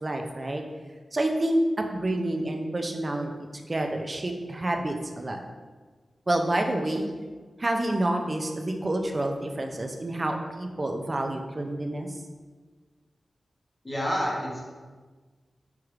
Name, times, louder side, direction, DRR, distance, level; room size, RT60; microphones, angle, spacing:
voice 1, 0.0-0.6 1.1-5.4 6.3-7.1 7.6-12.2, right 1 dB, 30° right, 3 dB, 0.4 m, -28 dB
voice 2, 13.8-14.6, equal, 20° left, -4 dB, 0.8 m, -28 dB
4.6 x 2.4 x 3.1 m, 1.4 s
wide cardioid pair, 145°, 0 cm